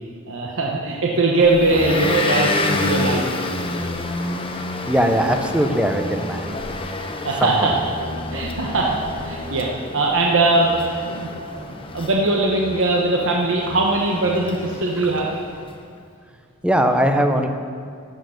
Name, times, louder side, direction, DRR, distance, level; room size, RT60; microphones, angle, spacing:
voice 1, 0.3-3.2 7.2-7.7 8.1-10.7 11.0-15.3, right 2 dB, 65° right, -1 dB, 1.1 m, -21 dB
Motor vehicle (road) / Engine, 1.4-15.6, left 2 dB, 25° left, 0.8 m, -29 dB
voice 2, 4.9-6.5 7.4-7.5 16.6-17.5, equal, 5° right, 5 dB, 0.7 m, -19 dB
13.0 x 6.7 x 6.5 m, 2.2 s
head